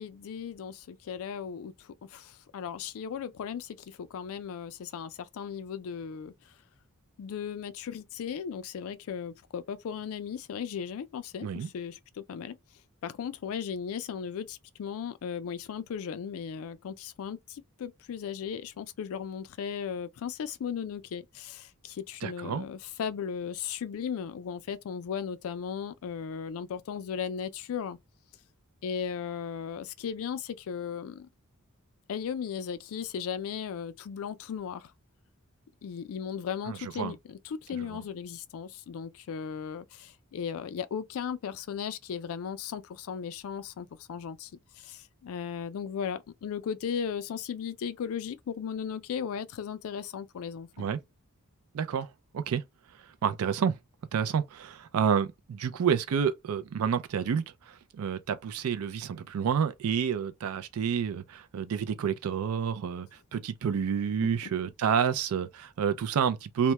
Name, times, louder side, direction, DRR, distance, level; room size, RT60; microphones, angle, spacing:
voice 1, 0.0-6.6 7.2-12.6 13.0-28.0 28.8-31.3 32.1-34.9 35.8-50.8 64.2-64.5, left 7 dB, 65° left, 0.3 m, -36 dB
voice 2, 22.2-22.6 36.7-37.1 50.8-51.0 51.7-52.1 52.3-52.6 53.2-53.8 54.1-66.7, right 7 dB, 70° right, 0.4 m, -29 dB
2.2 x 2.1 x 2.8 m
head